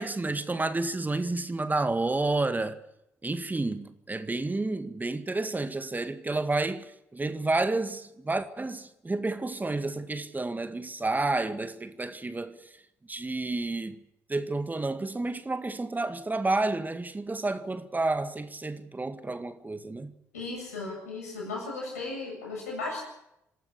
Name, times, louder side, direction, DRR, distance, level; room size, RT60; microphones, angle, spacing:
voice 1, 0.0-2.8 3.2-12.6 13.1-14.0 14.3-20.1, right 2 dB, 20° right, 1.9 m, -30 dB
voice 2, 20.3-23.0, left 3 dB, 90° left, 7.5 m, -36 dB
26.5 x 13.0 x 8.5 m
hypercardioid pair, 45°, 8 cm